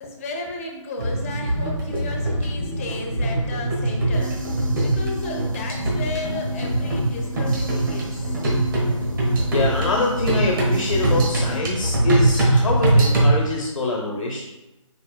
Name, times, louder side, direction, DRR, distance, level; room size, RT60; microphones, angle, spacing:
voice 1, 0.0-8.3 8.9-9.1, left 2 dB, 25° left, 1 dB, 0.7 m, -34 dB
sound 1, 1.0-13.4, right 1 dB, 40° right, 1.4 m, -22 dB
sound 2, 4.1-11.6, equal, 80° right, 0.9 m, -36 dB
voice 2, 9.5-14.4, left 2 dB, 75° left, -1 dB, 1.0 m, -25 dB
5.0 x 4.3 x 2.3 m, 0.95 s
figure-of-eight pair, 155°, 17 cm